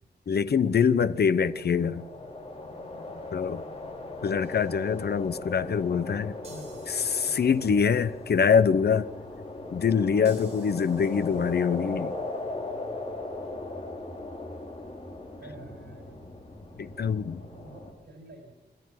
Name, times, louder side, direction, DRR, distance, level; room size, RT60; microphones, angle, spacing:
voice 1, 0.3-2.0 3.3-3.6 4.2-6.4 6.9-9.1 9.7-12.2 16.8-17.4, left 6 dB, 65° left, 0.8 m, -24 dB
sound 1, 1.0-17.9, left 2 dB, 35° left, 3.7 m, -39 dB
sound 2, 4.4-5.3 6.4-8.3 10.3-12.2, right 3 dB, 40° right, 4.2 m, -57 dB
voice 2, 15.4-16.3 16.7-16.9 17.4-18.6, right 2 dB, 85° right, 4.9 m, -48 dB
26.0 x 14.0 x 7.8 m
wide cardioid pair, 160°, 18 cm